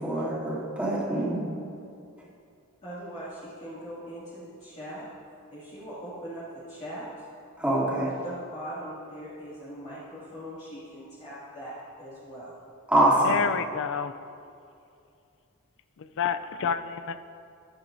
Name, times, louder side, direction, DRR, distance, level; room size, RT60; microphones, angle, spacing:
voice 1, 0.0-1.4 7.6-8.1 12.9-13.4, right 1 dB, 5° right, -8 dB, 2.7 m, -24 dB
voice 2, 2.8-5.1 5.5-7.1 8.0-12.5, right 1 dB, 30° left, -11 dB, 2.2 m, -41 dB
voice 3, 13.2-14.1 16.0-17.2, left 7 dB, 60° left, 11 dB, 0.4 m, -29 dB
14.5 x 11.0 x 2.6 m, 2.6 s
head